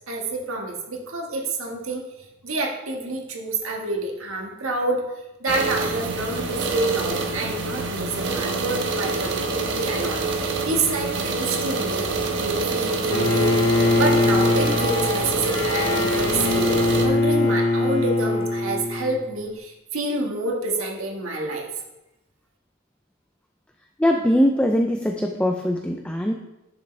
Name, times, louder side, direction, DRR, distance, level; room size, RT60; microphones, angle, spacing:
voice 1, 0.1-2.0 2.4-5.0 5.4-21.7, right 2 dB, 85° right, 0 dB, 1.7 m, -28 dB
sound 1, 5.5-17.1, right 3 dB, 60° right, 1.2 m, -26 dB
Bowed string instrument, 13.1-19.2, left 2 dB, 75° left, 1.3 m, -22 dB
voice 2, 24.0-26.3, equal, 5° left, 3 dB, 0.4 m, -21 dB
10.5 x 6.9 x 3.4 m, 0.98 s
head